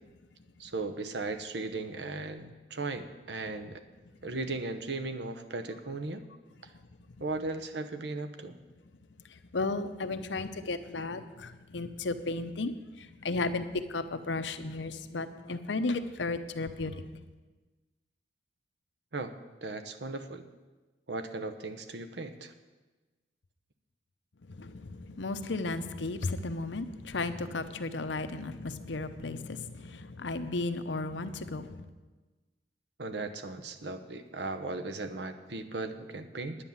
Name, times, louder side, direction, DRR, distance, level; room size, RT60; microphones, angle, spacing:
voice 1, 0.6-3.8 4.2-6.2 7.2-8.6 19.1-19.3 19.6-20.4 21.1-22.5 33.0-36.6, right 3 dB, 75° right, 0.9 m, -37 dB
voice 2, 9.2-17.0 24.4-31.8, left 3 dB, 90° left, 0.8 m, -34 dB
9.9 x 9.6 x 7.2 m
head